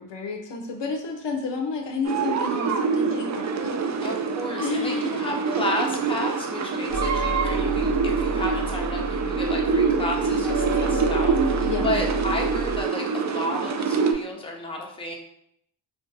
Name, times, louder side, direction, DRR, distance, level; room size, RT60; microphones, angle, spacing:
voice 1, 0.0-3.5 4.6-5.2 11.6-12.0, left 4 dB, 65° left, 2 dB, 0.7 m, -30 dB
sound 1, 2.0-14.1, right 5 dB, 40° right, 0.4 m, -25 dB
voice 2, 4.0-15.1, left 1 dB, 10° left, -1 dB, 0.7 m, -32 dB
sound 2, 6.9-12.8, right 1 dB, 85° right, 0.7 m, -30 dB
2.5 x 2.4 x 3.8 m, 0.75 s
cardioid pair, 50°, 47 cm